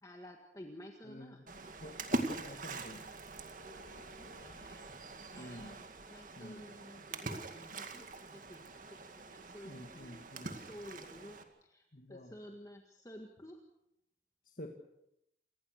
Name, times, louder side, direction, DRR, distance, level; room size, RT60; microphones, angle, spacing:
voice 1, 0.0-1.4 4.4-4.9 5.3-9.0 9.3-13.6, equal, 20° left, 2 dB, 1.8 m, -52 dB
voice 2, 1.0-3.1 3.6-4.6 5.3-5.8 6.4-6.7 9.6-10.6 11.9-12.3 14.5-14.7, left 1 dB, 50° left, 2 dB, 2.0 m, -50 dB
Splash splatter, 1.5-11.4, right 2 dB, 45° right, 2.1 m, -43 dB
28.0 x 19.5 x 6.6 m, 0.81 s
head